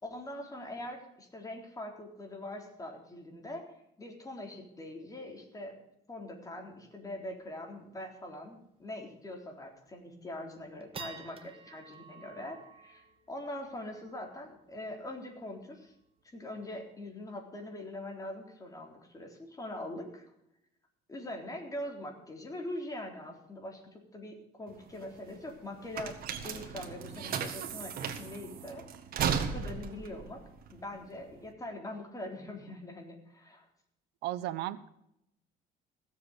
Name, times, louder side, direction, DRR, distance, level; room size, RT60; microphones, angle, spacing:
voice 1, 0.0-3.6 4.0-5.8 6.1-15.9 16.3-20.3 21.1-26.2 26.4-28.9 29.4-30.4 30.7-33.7, left 1 dB, 20° left, 2 dB, 3.8 m, -43 dB
sound 1, 7.4-7.5 7.8-7.9 8.3-8.5 9.0-9.1 9.7-10.0 10.5-17.1, right 5 dB, 35° right, 1.6 m, -52 dB
sound 2, 24.7-31.5, right 7 dB, 60° right, 1.7 m, -36 dB
voice 2, 34.2-34.9, right 14 dB, 90° right, 16 dB, 0.8 m, -35 dB
16.5 x 7.6 x 6.6 m, 0.78 s
cardioid pair, 110°, 17 cm